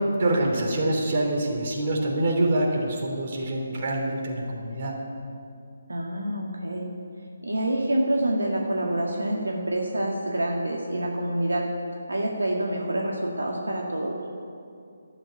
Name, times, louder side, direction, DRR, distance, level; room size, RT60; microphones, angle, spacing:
voice 1, 0.0-4.9, right 1 dB, 40° right, 0 dB, 3.2 m, -25 dB
voice 2, 5.9-6.9 7.4-11.7 12.1-14.1, right 1 dB, 80° right, -1 dB, 1.8 m, -27 dB
12.5 x 8.6 x 9.0 m, 2.4 s
figure-of-eight pair, 145°, 0 cm